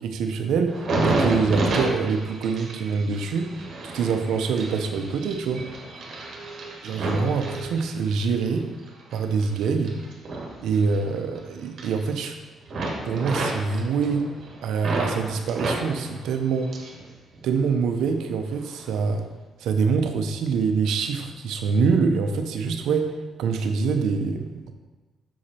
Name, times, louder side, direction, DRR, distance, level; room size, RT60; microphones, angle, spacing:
voice 1, 0.0-3.6 3.9-5.6 6.8-8.7 9.1-10.0 10.6-12.4 13.0-14.3 14.6-16.7 17.4-19.2 19.6-24.7, right 5 dB, 80° right, 6 dB, 0.7 m, -25 dB
sound 1, 0.7-8.3 8.8-11.4 11.6-12.4 12.7-15.2 15.5-17.0 17.3-18.1 18.6-18.8, right 2 dB, 55° right, 1.6 m, -30 dB
6.3 x 4.9 x 4.3 m, 1.2 s
cardioid pair, 90°, 0 cm